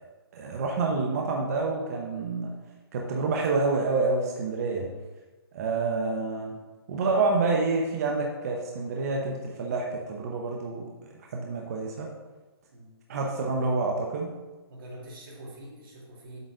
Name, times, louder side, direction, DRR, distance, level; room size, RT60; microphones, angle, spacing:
voice 1, 0.3-2.5 2.9-4.9 5.5-6.6 6.9-10.9 11.3-12.1 13.1-14.3, right 3 dB, 35° right, 0 dB, 0.8 m, -28 dB
voice 2, 14.7-16.4, right 1 dB, 55° right, -4 dB, 2.5 m, -44 dB
8.0 x 3.9 x 6.4 m, 1.2 s
hypercardioid pair, 165°, 14 cm